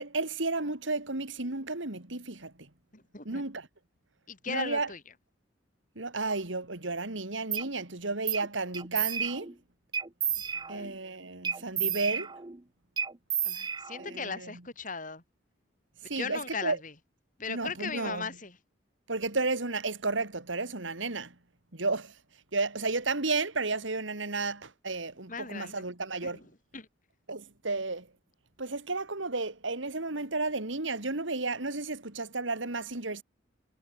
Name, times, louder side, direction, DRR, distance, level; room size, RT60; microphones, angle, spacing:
voice 1, 0.0-2.7 3.2-3.7 4.5-4.9 5.9-9.6 10.7-12.3 14.0-14.5 16.0-16.8 17.5-18.3 19.1-21.3 21.7-22.2 22.5-26.4 27.3-28.1 28.6-33.2, right 3 dB, 85° right, 2.9 m, -32 dB
voice 2, 2.9-3.4 4.3-5.0 10.5-10.9 13.4-15.2 16.2-16.9 17.4-18.6 25.3-25.8 26.2-26.5 26.7-26.9, left 5 dB, 45° left, 4.4 m, -38 dB
sound 1, 7.5-7.7 8.3-8.5 8.7-9.6 9.9-10.9 11.4-12.6 13.0-14.2, right 8 dB, 25° right, 0.8 m, -32 dB
head